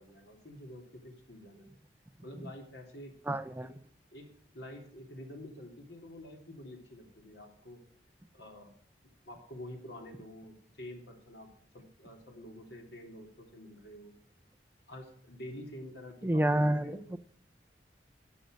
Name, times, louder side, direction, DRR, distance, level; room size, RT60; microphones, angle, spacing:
voice 1, 0.0-1.7 2.2-3.1 4.1-4.3 4.5-7.8 8.3-8.8 9.2-14.1 14.9-17.2, left 1 dB, 75° left, 3 dB, 3.2 m, -48 dB
voice 2, 3.3-3.7 16.2-17.2, right 1 dB, 10° right, 13 dB, 0.4 m, -29 dB
13.0 x 8.0 x 6.3 m, 0.63 s
head